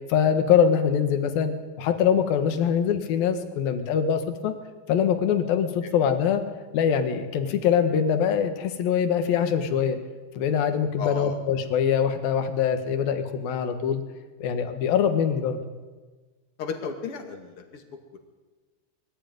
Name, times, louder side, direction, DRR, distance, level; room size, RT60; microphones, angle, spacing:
voice 1, 0.1-4.5 4.9-6.4 6.7-10.0 10.4-14.0 14.4-15.6, left 8 dB, 65° left, 8 dB, 3.0 m, -23 dB
voice 2, 11.0-11.4 16.6-17.8 18.1-18.2, left 5 dB, 40° left, 4 dB, 2.4 m, -34 dB
22.5 x 14.5 x 9.4 m, 1.3 s
omnidirectional pair, 5.1 m